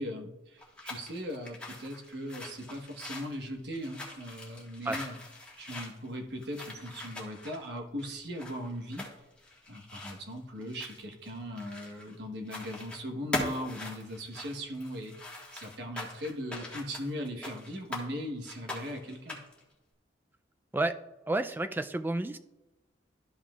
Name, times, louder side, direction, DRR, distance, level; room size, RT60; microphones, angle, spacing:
voice 1, 0.0-5.2 5.6-9.1 9.7-19.4, equal, 65° right, 3 dB, 1.2 m, -39 dB
sound 1, 0.6-12.1 12.4-13.0 13.3-18.1 18.4-19.6, left 2 dB, 5° left, 1.5 m, -42 dB
voice 2, 21.3-22.4, right 2 dB, 10° right, 9 dB, 0.3 m, -30 dB
13.0 x 5.7 x 2.4 m, 1.0 s
head